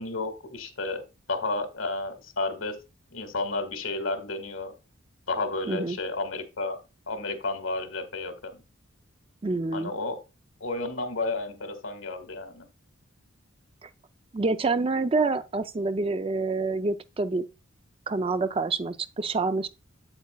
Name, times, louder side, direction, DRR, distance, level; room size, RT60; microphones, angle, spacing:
voice 1, 0.0-2.8 3.1-4.7 5.3-6.8 7.1-8.6 9.7-10.2 10.6-12.7, left 2 dB, 80° left, 1.7 m, -32 dB
voice 2, 5.7-6.0 9.4-9.9 13.8-13.9 14.3-17.5 18.1-19.7, right 3 dB, 25° right, 0.4 m, -27 dB
8.4 x 8.0 x 2.3 m
head